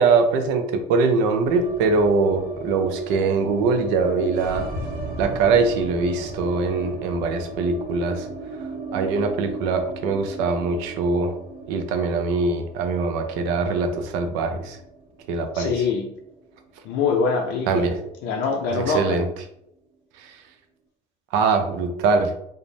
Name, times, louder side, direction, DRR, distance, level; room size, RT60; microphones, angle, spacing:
voice 1, 0.0-4.6 5.2-8.3 8.9-11.3 11.7-14.8 15.3-15.7 17.7-17.9 18.7-19.3 21.3-22.3, right 4 dB, 85° right, 7 dB, 0.4 m, -22 dB
sound 1, 1.4-17.6 17.8-17.9 18.2-18.9, right 2 dB, 50° right, 0.9 m, -37 dB
voice 2, 15.5-16.2 16.8-17.9 18.2-19.2, left 4 dB, 80° left, 1 dB, 0.4 m, -24 dB
2.5 x 2.0 x 3.1 m, 0.77 s
supercardioid pair, 80°, 18 cm